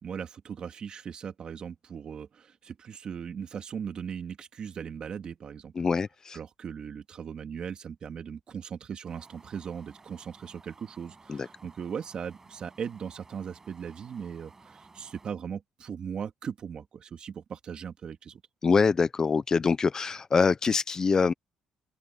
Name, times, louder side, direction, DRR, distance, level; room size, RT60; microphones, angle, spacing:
voice 1, 0.0-5.7 6.3-18.4, right 7 dB, 45° right, 2.3 m, -38 dB
voice 2, 5.8-6.4 11.3-11.5 18.6-21.3, left 5 dB, 30° left, 0.7 m, -24 dB
Wind, 9.1-15.3, right 3 dB, 20° right, 7.8 m, -55 dB
open air
cardioid pair, 115°, 2 cm